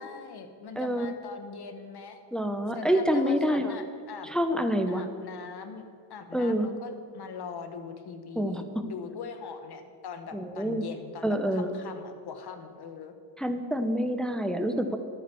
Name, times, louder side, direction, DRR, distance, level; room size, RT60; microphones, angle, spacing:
voice 1, 0.0-2.2 2.7-4.3 4.9-5.8 6.1-13.1, left 6 dB, 55° left, 8 dB, 1.4 m, -41 dB
voice 2, 0.8-1.1 2.3-3.7 4.2-5.0 6.3-6.7 8.4-8.6 10.3-10.8 11.2-11.7 13.4-15.0, equal, ahead, 6 dB, 0.8 m, -27 dB
10.5 x 9.1 x 7.0 m, 2.3 s
cardioid pair, 95°, 45 cm